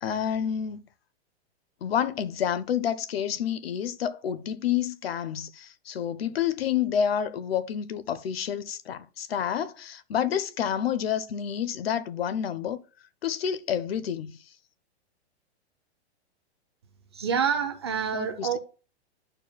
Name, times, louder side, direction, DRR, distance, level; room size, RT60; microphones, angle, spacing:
voice 1, 0.0-0.8 1.8-12.8 13.2-14.3 18.1-18.6, left 9 dB, 60° left, 0.7 m, -29 dB
voice 2, 17.1-18.6, right 7 dB, 25° right, 0.5 m, -27 dB
11.5 x 4.5 x 2.2 m
hypercardioid pair, 180°, 34 cm